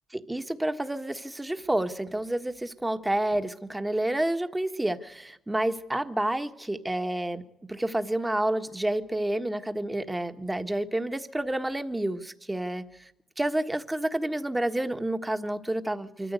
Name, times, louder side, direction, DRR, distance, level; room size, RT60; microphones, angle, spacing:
voice 1, 0.1-7.4 7.7-13.1 13.4-16.3, right 1 dB, 10° right, 8 dB, 1.5 m, -29 dB
24.5 x 14.0 x 8.3 m, 0.81 s
cardioid pair, 90°, 0 cm